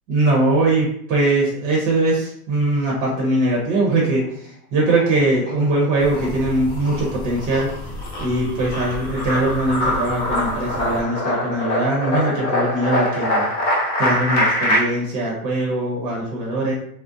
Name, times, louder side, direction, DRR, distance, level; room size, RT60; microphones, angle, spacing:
voice 1, 0.1-7.7 8.2-13.5 14.0-16.7, right 2 dB, 40° right, -3 dB, 0.8 m, -21 dB
sound 1, 4.8-5.7 6.0-14.8, left 1 dB, 35° left, 0.9 m, -23 dB
sound 2, 6.0-11.0, equal, 10° left, 0.5 m, -34 dB
2.5 x 2.1 x 2.5 m, 0.66 s
hypercardioid pair, 105°, 47 cm